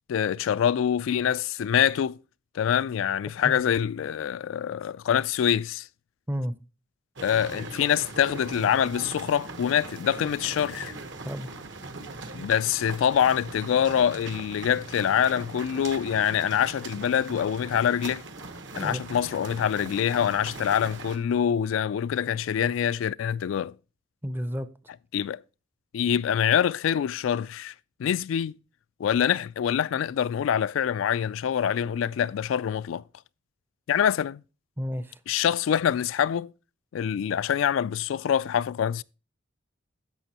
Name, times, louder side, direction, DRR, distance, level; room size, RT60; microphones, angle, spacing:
voice 1, 0.1-2.2 2.5-5.9 7.2-11.0 12.3-18.2 18.7-23.7 25.1-25.4 25.9-27.7 28.0-28.6 29.0-33.0 33.9-34.4 35.3-36.5 36.9-39.0, left 9 dB, 80° left, 0.3 m, -25 dB
sound 1, 7.2-21.2, right 3 dB, 65° right, 1.2 m, -40 dB
voice 2, 18.8-19.1 24.2-24.7 34.8-35.2, equal, 10° right, 0.5 m, -31 dB
11.0 x 7.6 x 2.9 m
head